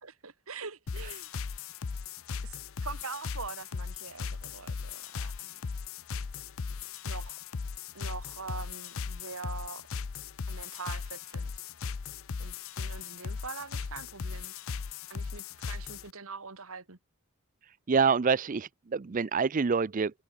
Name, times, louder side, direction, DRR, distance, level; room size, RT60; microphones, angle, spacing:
voice 1, 0.0-1.3 2.4-5.6 7.0-7.4 7.9-9.9 10.5-11.5 12.4-14.5 15.1-17.0, right 4 dB, 70° right, 2.2 m, -43 dB
sound 1, 0.9-16.1, left 5 dB, 65° left, 0.6 m, -38 dB
voice 2, 17.9-20.1, right 5 dB, 35° right, 0.4 m, -26 dB
head